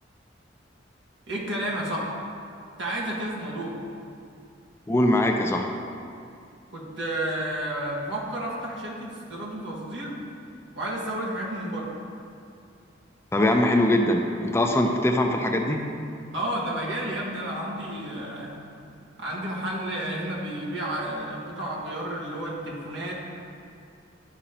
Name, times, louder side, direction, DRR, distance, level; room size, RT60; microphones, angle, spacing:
voice 1, 1.3-2.1 2.8-3.8 6.7-10.2 10.7-11.9 16.3-18.6 19.2-23.1, right 1 dB, 75° right, -4 dB, 1.6 m, -31 dB
voice 2, 4.9-5.7 13.3-15.8, left 1 dB, 15° left, 2 dB, 0.4 m, -22 dB
11.0 x 5.0 x 2.9 m, 2.5 s
head